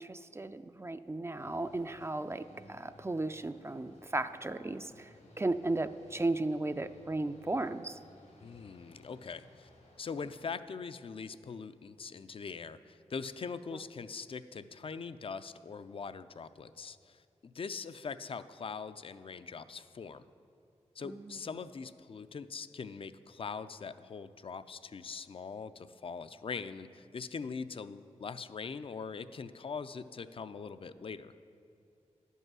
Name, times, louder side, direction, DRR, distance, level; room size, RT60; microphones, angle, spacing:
voice 1, 0.0-8.0 13.7-13.8 21.0-21.6, right 2 dB, 20° right, 10 dB, 0.4 m, -35 dB
sound 1, 1.4-10.4, left 1 dB, 85° left, 1.9 m, -59 dB
voice 2, 8.4-9.7 10.0-20.2 21.0-31.3, left 5 dB, 50° left, 13 dB, 0.4 m, -42 dB
10.5 x 5.5 x 6.1 m, 2.5 s
cardioid pair, 40°, 12 cm